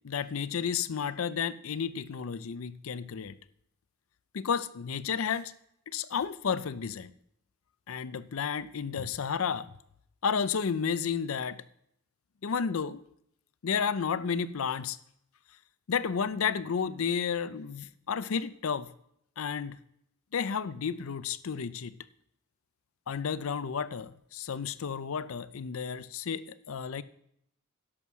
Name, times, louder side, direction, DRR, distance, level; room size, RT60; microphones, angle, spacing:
voice 1, 0.0-3.4 4.3-5.5 5.9-7.1 7.9-9.7 10.2-11.6 12.4-13.0 13.6-15.0 15.9-18.9 19.4-19.8 20.3-22.0 23.1-27.0, left 6 dB, 70° left, 15 dB, 0.5 m, -32 dB
11.0 x 6.3 x 6.2 m, 0.73 s
head